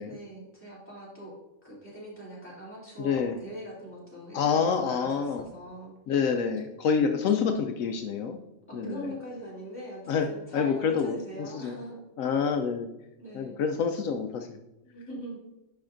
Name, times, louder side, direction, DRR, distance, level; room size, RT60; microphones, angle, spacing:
voice 1, 0.0-1.3 1.6-5.9 7.3-7.6 8.7-12.0 13.2-13.6 14.8-15.4, equal, 10° left, -7 dB, 2.8 m, -42 dB
voice 2, 3.0-3.4 4.3-5.4 6.1-8.4 8.7-9.1 10.1-10.3 10.5-11.8 12.2-12.9 13.3-14.6, left 6 dB, 75° left, 5 dB, 1.0 m, -27 dB
10.5 x 5.6 x 2.6 m, 0.95 s
omnidirectional pair, 1.4 m